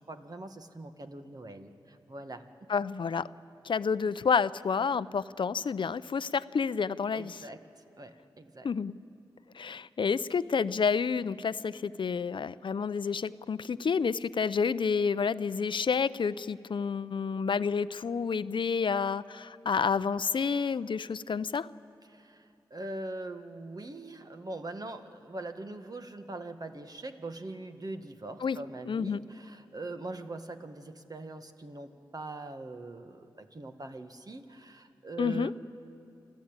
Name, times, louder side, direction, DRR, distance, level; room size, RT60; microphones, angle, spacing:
voice 1, 0.0-2.4 7.1-7.6 8.0-8.7 22.1-35.5, right 2 dB, 45° right, 7 dB, 1.7 m, -42 dB
voice 2, 2.7-3.2 3.7-7.4 8.6-8.9 9.6-21.7 28.4-28.6 28.9-29.2 35.2-35.5, left 5 dB, 65° left, 16 dB, 0.5 m, -29 dB
28.0 x 13.0 x 8.9 m, 2.6 s
cardioid pair, 40°, 9 cm